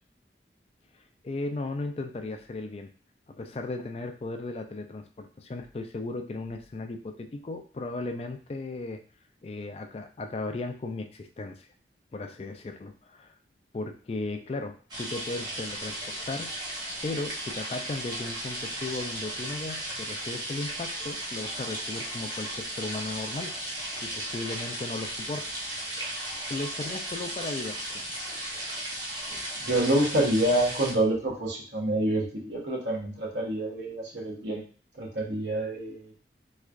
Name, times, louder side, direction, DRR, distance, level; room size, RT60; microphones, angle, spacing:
voice 1, 1.2-2.9 3.3-9.0 9.4-11.7 12.1-13.3 13.7-16.5 17.0-23.6 24.0-25.5 26.4-28.2, left 2 dB, 35° left, 6 dB, 0.3 m, -36 dB
sound 1, 14.9-30.9, right 1 dB, 25° right, 0.8 m, -35 dB
voice 2, 29.6-34.6 35.0-36.2, right 1 dB, 80° right, -1 dB, 1.1 m, -27 dB
3.5 x 3.2 x 2.4 m, 0.40 s
head